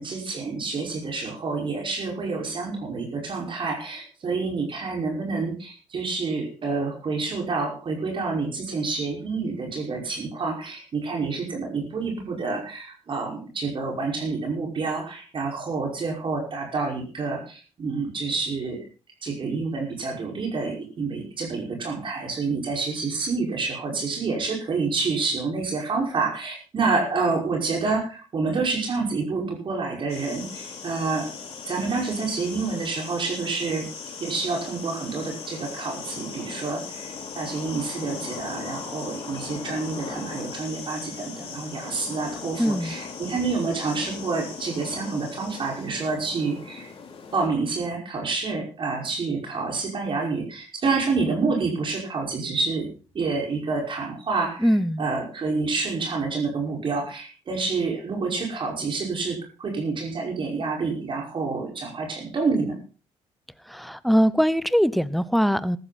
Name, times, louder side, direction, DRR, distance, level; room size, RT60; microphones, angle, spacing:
voice 1, 0.0-18.8 19.2-31.3 31.6-33.9 34.2-46.9 47.3-52.9 53.1-54.7 55.0-62.8, right 4 dB, 45° right, 1 dB, 5.5 m, -28 dB
sound 1, 30.1-47.5, left 5 dB, 55° left, 6.0 m, -38 dB
voice 2, 42.6-43.0 54.6-55.1 63.7-65.8, equal, ahead, 16 dB, 0.9 m, -22 dB
15.0 x 13.0 x 4.3 m, 0.38 s
cardioid pair, 95°, 12 cm